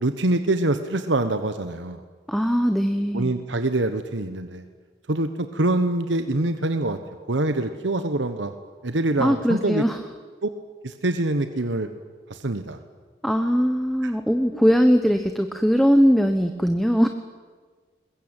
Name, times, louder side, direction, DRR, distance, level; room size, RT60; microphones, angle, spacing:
voice 1, 0.0-2.0 3.1-4.6 5.1-7.0 7.3-8.5 8.8-9.8 10.4-10.5 10.8-11.9 12.3-12.8 14.0-14.1, right 2 dB, 90° right, 9 dB, 1.2 m, -25 dB
voice 2, 2.3-3.3 9.2-10.0 13.2-17.1, equal, ahead, 7 dB, 0.9 m, -20 dB
22.0 x 21.5 x 9.0 m, 1.5 s
head